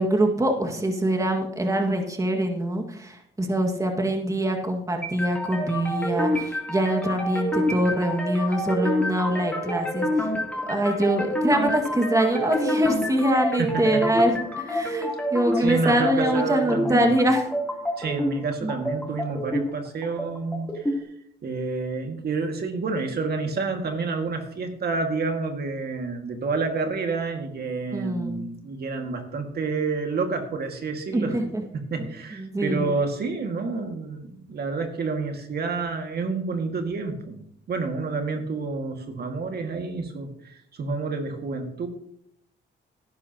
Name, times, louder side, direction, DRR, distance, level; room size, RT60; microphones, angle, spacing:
voice 1, 0.0-10.3 10.7-17.5 18.6-18.7 27.9-28.5 31.1-31.6 32.3-32.9, right 1 dB, 15° right, 3 dB, 1.8 m, -24 dB
sound 1, 5.0-21.0, equal, 5° left, 2.9 m, -28 dB
voice 2, 13.6-14.0 15.6-17.1 18.0-21.0 21.4-31.4 31.7-37.4 37.7-41.9, right 4 dB, 55° right, 4 dB, 1.9 m, -29 dB
17.5 x 10.5 x 2.9 m, 0.70 s
cardioid pair, 90°, 20 cm